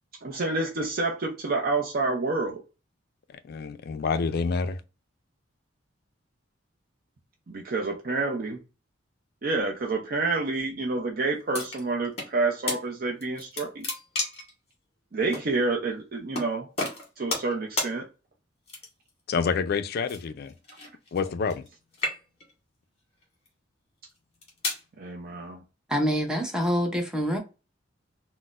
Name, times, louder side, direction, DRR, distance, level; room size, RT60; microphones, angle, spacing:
voice 1, 0.2-2.6 7.5-8.6 9.4-13.8 15.1-16.7 17.2-18.0 25.0-25.6, right 3 dB, 50° right, 0.6 m, -28 dB
voice 2, 3.5-4.8 19.3-20.5 21.1-21.6, left 5 dB, 55° left, 0.4 m, -27 dB
sound 1, 11.5-12.3 12.7-12.8 13.2-14.5 15.3-15.5 16.3-16.5 16.8-17.5 17.8-17.9 18.7-19.1 20.1-21.7 21.9-22.5 23.2-23.5 24.2-24.8, left 2 dB, 35° left, 1.3 m, -32 dB
voice 3, 25.9-27.4, equal, 5° right, 0.6 m, -26 dB
4.0 x 2.1 x 2.4 m
head